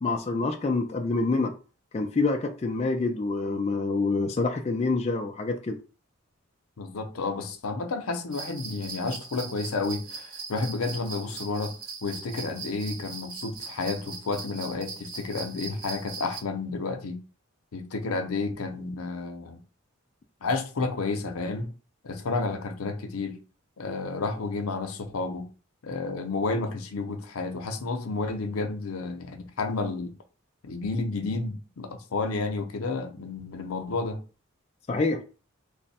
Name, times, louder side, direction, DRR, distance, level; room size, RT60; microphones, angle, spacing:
voice 1, 0.0-1.5 1.9-5.8 34.9-35.2, left 3 dB, 30° left, 0.3 m, -26 dB
voice 2, 6.8-11.7 12.0-17.2 17.7-19.6 20.4-21.7 22.0-23.4 23.8-25.5 25.8-30.1 30.6-34.2, left 3 dB, 85° left, 0.6 m, -31 dB
sound 1, 8.3-16.4, right 5 dB, 40° right, 0.5 m, -40 dB
3.3 x 2.0 x 4.0 m
head